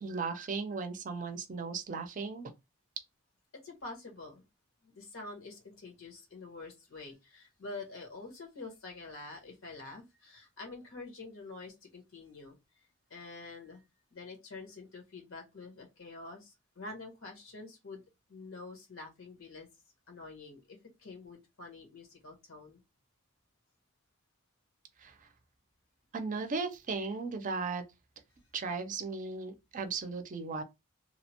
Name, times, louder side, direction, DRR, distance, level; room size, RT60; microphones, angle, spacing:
voice 1, 0.0-2.5 25.0-25.2 26.1-27.8 28.5-30.6, right 4 dB, 40° right, 0.5 m, -36 dB
voice 2, 3.6-4.4 4.8-12.6 13.1-13.8 14.1-18.0 18.3-19.7 20.1-22.8, left 3 dB, 85° left, 1.2 m, -47 dB
2.7 x 2.1 x 2.8 m
head